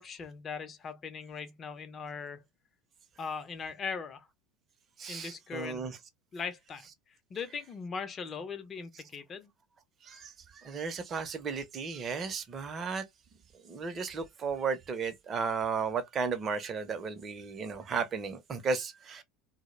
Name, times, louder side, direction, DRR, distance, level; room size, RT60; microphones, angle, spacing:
voice 1, 0.0-2.4 3.2-4.3 5.1-5.9 6.3-6.9 7.3-9.5, left 5 dB, 35° left, 0.6 m, -39 dB
voice 2, 5.0-6.0 10.0-13.0 13.6-19.2, right 5 dB, 35° right, 0.6 m, -34 dB
2.2 x 2.0 x 3.0 m
figure-of-eight pair, 75°, 0 cm